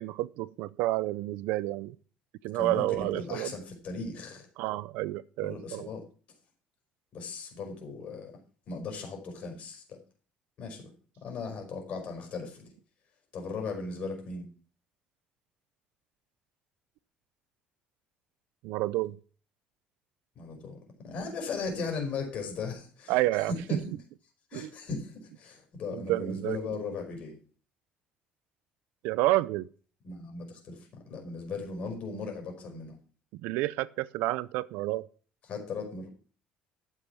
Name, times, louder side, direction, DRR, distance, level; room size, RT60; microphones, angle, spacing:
voice 1, 0.0-2.0 2.4-3.5 4.6-5.9 18.6-19.2 23.1-23.5 24.5-24.6 25.9-26.6 29.0-29.7 33.3-35.1, right 17 dB, 90° right, 0.5 m, -29 dB
voice 2, 2.5-4.5 5.4-6.0 7.1-8.3 8.7-10.0 10.6-10.9 11.2-12.7 13.3-14.5 20.3-23.8 24.5-27.4 30.0-33.0 35.5-36.1, left 4 dB, 50° left, 5.0 m, -37 dB
13.0 x 7.1 x 6.0 m
cardioid pair, 135°, 3 cm